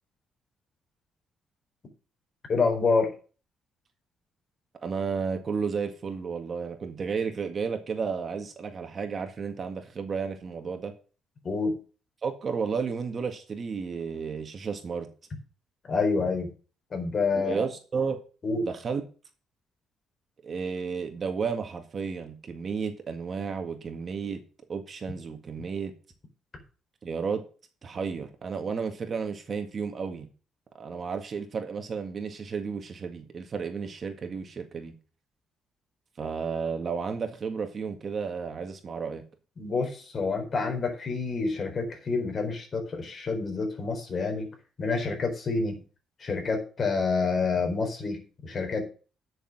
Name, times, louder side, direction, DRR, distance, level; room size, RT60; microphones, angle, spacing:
voice 1, 2.5-3.1 11.4-11.8 15.9-16.5 16.9-17.6 18.4-18.7 39.6-44.5 44.8-45.8 46.2-48.8, left 4 dB, 45° left, 4 dB, 4.3 m, -28 dB
voice 2, 4.8-10.9 12.2-15.1 17.3-18.2 18.7-19.0 20.4-24.4 24.7-25.9 27.0-27.4 27.8-30.3 30.8-34.9 36.2-39.2, right 5 dB, 45° right, 5 dB, 1.8 m, -32 dB
10.5 x 6.6 x 6.0 m, 0.37 s
cardioid pair, 90°, 0 cm